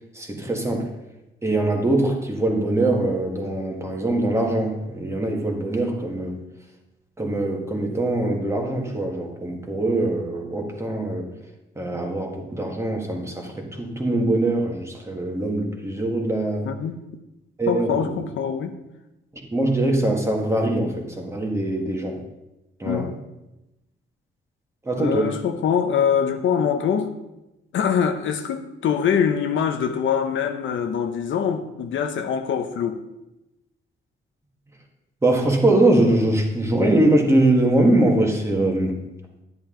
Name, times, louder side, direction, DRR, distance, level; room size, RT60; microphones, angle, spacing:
voice 1, 0.2-0.9 1.4-6.4 7.2-11.3 11.8-16.7 17.6-18.1 19.3-22.2 22.8-23.1 24.9-25.3 35.2-39.0, right 1 dB, 15° right, 0 dB, 1.7 m, -22 dB
voice 2, 17.7-18.7 22.8-23.2 25.0-27.1 27.7-33.0, left 7 dB, 70° left, 7 dB, 0.9 m, -23 dB
11.0 x 10.5 x 3.8 m, 0.94 s
wide cardioid pair, 155°, 21 cm